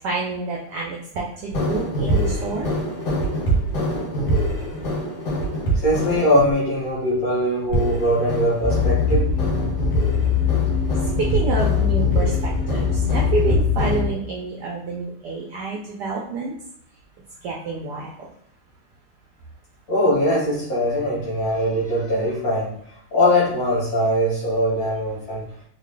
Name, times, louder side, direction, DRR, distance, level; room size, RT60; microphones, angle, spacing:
voice 1, 0.0-2.7 11.3-12.3 12.7-16.5 17.4-18.1, right 3 dB, 80° right, -2 dB, 0.9 m, -28 dB
sound 1, 1.5-6.5 7.7-14.0, right 1 dB, 80° left, 2.1 m, -25 dB
voice 2, 5.7-9.3 19.9-22.8 23.1-25.5, equal, 55° left, -7 dB, 1.1 m, -21 dB
sound 2, 8.6-14.1, left 7 dB, 45° right, 0.4 m, -22 dB
4.0 x 2.2 x 3.2 m, 0.67 s
omnidirectional pair, 2.3 m